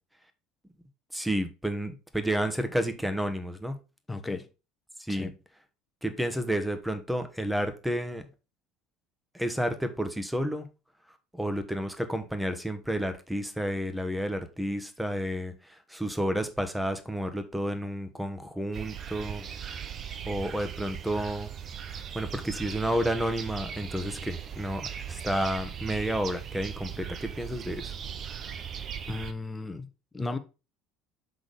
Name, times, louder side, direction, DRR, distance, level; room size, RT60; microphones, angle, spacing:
voice 1, 1.1-3.8 5.0-5.3 6.0-8.2 9.3-10.7 11.3-19.5 20.3-21.5 21.9-27.9, equal, 5° right, 1.2 m, -31 dB
voice 2, 4.1-4.5 5.1-5.3 29.1-29.9 30.1-30.4, left 3 dB, 15° left, 1.0 m, -34 dB
sound 1, 18.7-29.3, right 8 dB, 45° right, 0.7 m, -39 dB
6.0 x 3.8 x 5.2 m
hypercardioid pair, 70°, 0 cm